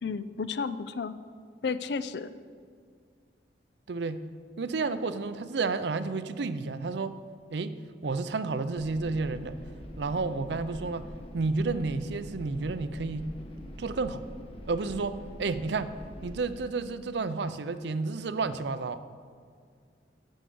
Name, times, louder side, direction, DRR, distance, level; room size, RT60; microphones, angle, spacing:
voice 1, 0.0-1.2 1.6-2.3, left 5 dB, 65° left, 13 dB, 0.4 m, -32 dB
voice 2, 3.9-4.2 4.6-7.2 7.5-9.6 10.0-11.1 11.3-13.3 13.8-14.2 14.7-15.9 16.2-19.0, right 3 dB, 70° right, 12 dB, 0.5 m, -31 dB
sound 1, 8.8-16.4, equal, 35° left, 1.1 m, -44 dB
9.1 x 6.4 x 6.9 m, 2.1 s
head